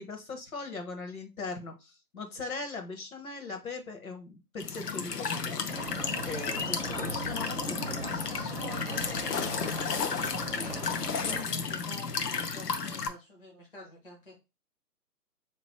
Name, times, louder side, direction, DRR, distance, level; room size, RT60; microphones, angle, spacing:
voice 1, 0.0-8.1 10.2-10.7 11.0-11.5, left 3 dB, 60° left, 4 dB, 1.1 m, -40 dB
Walk footsteps / Chirp tweet / Stream, 4.6-13.1, left 5 dB, 75° left, 0.7 m, -33 dB
sound 1, 5.7-11.4, right 2 dB, 40° right, 0.6 m, -39 dB
voice 2, 6.8-7.1 8.0-10.1 10.5-14.4, left 2 dB, 35° left, -3 dB, 0.6 m, -48 dB
4.1 x 3.0 x 3.0 m, 0.26 s
hypercardioid pair, 175°, 48 cm